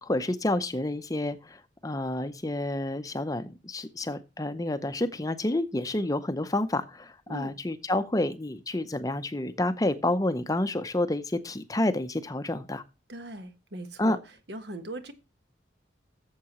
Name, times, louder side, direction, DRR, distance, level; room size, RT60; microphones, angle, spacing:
voice 1, 0.0-12.8 14.0-14.2, left 1 dB, 20° left, 0.6 m, -29 dB
voice 2, 7.3-7.6 13.1-14.2 14.5-15.1, right 1 dB, 65° right, 1.3 m, -39 dB
13.5 x 7.4 x 3.0 m
head